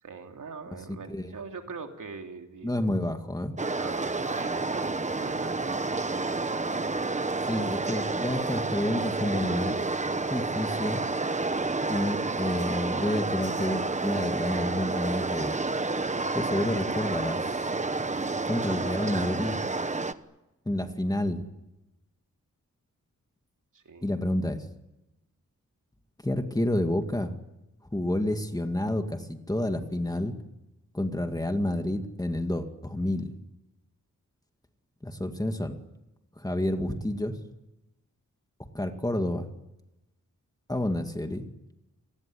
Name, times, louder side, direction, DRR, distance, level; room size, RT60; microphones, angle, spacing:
voice 1, 0.0-2.7 3.8-5.8 18.4-18.8 23.7-24.1, right 5 dB, 75° right, 4 dB, 3.3 m, -43 dB
voice 2, 2.6-3.5 7.5-9.8 10.3-11.0 11.9-15.6 16.3-17.6 18.5-19.6 20.7-21.4 24.0-24.6 26.2-27.3 27.9-30.3 30.9-33.3 35.0-35.8 36.4-37.4 38.7-39.5 40.7-41.5, left 1 dB, 10° left, 6 dB, 2.1 m, -29 dB
sound 1, 3.6-20.1, right 3 dB, 20° right, 1.0 m, -30 dB
28.5 x 19.5 x 9.9 m, 0.96 s
wide cardioid pair, 135°, 31 cm